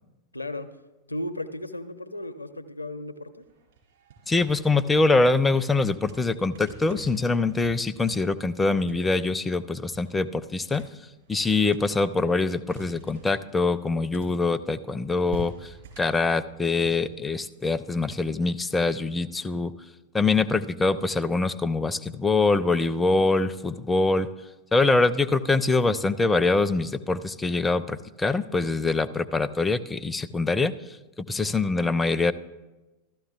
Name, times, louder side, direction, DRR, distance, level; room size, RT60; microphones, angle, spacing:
voice 1, 0.3-0.7 1.1-3.5, left 1 dB, 85° left, 11 dB, 0.6 m, -35 dB
sound 1, 3.4-5.7 6.0-14.8 15.3-18.2, right 5 dB, 60° right, 4.1 m, -47 dB
voice 2, 4.3-10.8 11.3-19.7 20.1-24.3 24.7-32.3, left 3 dB, 10° left, 13 dB, 0.4 m, -24 dB
14.5 x 13.0 x 2.4 m, 1.1 s
figure-of-eight pair, 90°, 0 cm